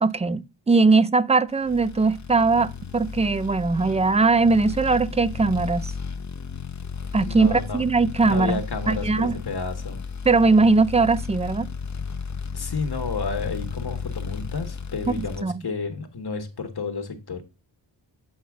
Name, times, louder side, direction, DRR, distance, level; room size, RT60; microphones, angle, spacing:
voice 1, 0.0-5.9 7.1-8.6 8.9-9.4 10.3-11.7 15.1-15.6, right 3 dB, 15° right, 0.5 m, -20 dB
sound 1, 1.6-15.4, left 5 dB, 40° left, 0.8 m, -34 dB
voice 2, 7.2-7.8 8.2-10.1 12.5-17.4, left 4 dB, 55° left, 1.6 m, -31 dB
8.8 x 5.5 x 3.6 m
wide cardioid pair, 90°, 44 cm